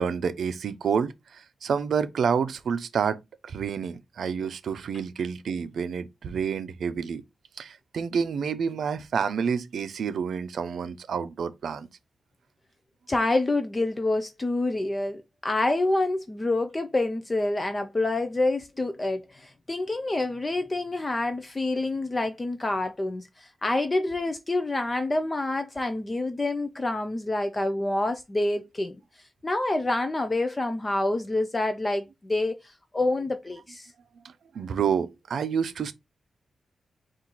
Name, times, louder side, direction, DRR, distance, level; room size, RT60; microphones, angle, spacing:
voice 1, 0.0-3.2 3.5-7.2 7.6-11.9 34.5-35.9, right 6 dB, 75° right, 0.5 m, -28 dB
voice 2, 13.1-29.0 29.4-32.6 32.9-33.9, left 2 dB, 20° left, 0.4 m, -27 dB
4.4 x 2.5 x 3.9 m
wide cardioid pair, 120°, 0 cm